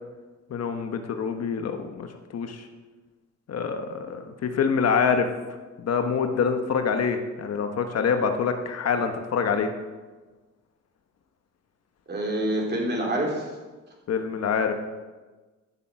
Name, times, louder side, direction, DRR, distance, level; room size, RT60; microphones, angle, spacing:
voice 1, 0.5-2.6 3.5-5.3 5.8-9.7 14.1-14.7, left 6 dB, 55° left, 6 dB, 1.2 m, -26 dB
voice 2, 12.1-13.5, right 1 dB, 35° right, -1 dB, 3.8 m, -26 dB
13.5 x 7.1 x 5.9 m, 1.3 s
cardioid pair, 90°, 30 cm